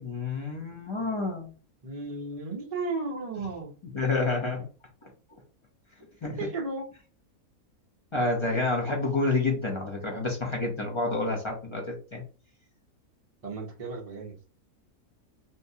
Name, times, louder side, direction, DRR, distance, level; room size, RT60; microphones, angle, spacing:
voice 1, 0.0-1.5 3.9-4.7 6.2-6.5 8.1-12.2, left 3 dB, 35° left, 0 dB, 0.4 m, -29 dB
voice 2, 1.8-3.7 6.4-6.9 13.4-14.4, right 3 dB, 45° right, 0 dB, 0.4 m, -34 dB
3.4 x 2.7 x 2.7 m, 0.36 s
omnidirectional pair, 1.6 m